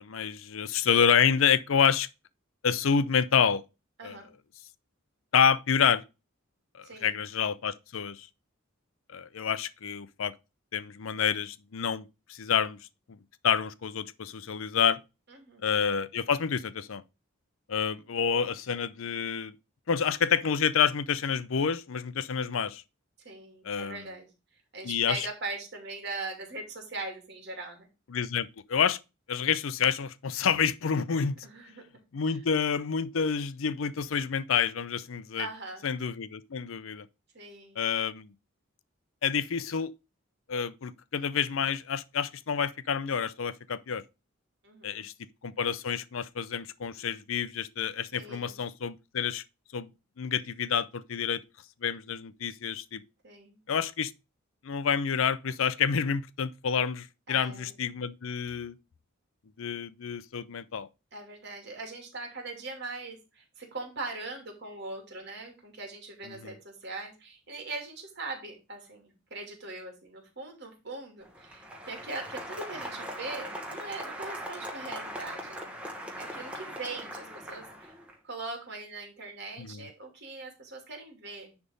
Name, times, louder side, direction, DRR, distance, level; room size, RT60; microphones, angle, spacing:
voice 1, 0.0-2.1 2.6-3.6 4.0-4.2 5.3-6.0 6.7-8.3 9.1-10.3 10.7-12.8 13.1-13.2 13.4-15.0 15.6-17.0 17.7-19.5 19.9-22.8 23.6-24.0 24.8-25.3 28.1-29.0 29.3-31.4 32.1-35.5 35.8-37.1 37.8-38.3 39.2-39.9 40.5-44.0 44.8-45.1 45.4-49.4 49.7-49.9 50.2-51.4 51.8-53.0 53.7-54.1 54.6-58.8 59.6-60.9 66.3-66.5 79.6-79.9, left 7 dB, 70° left, 0.5 m, -28 dB
voice 2, 4.0-4.3 6.8-7.2 15.3-15.7 23.2-24.3 24.7-27.9 31.4-31.8 32.3-32.4 35.4-35.9 37.3-37.8 44.6-45.0 48.1-48.6 53.2-53.6 57.3-57.8 61.1-75.8 76.1-78.0 78.2-81.5, right 3 dB, 55° right, 2.7 m, -41 dB
Applause, 71.2-78.1, equal, 5° right, 1.3 m, -40 dB
10.0 x 3.7 x 5.2 m
head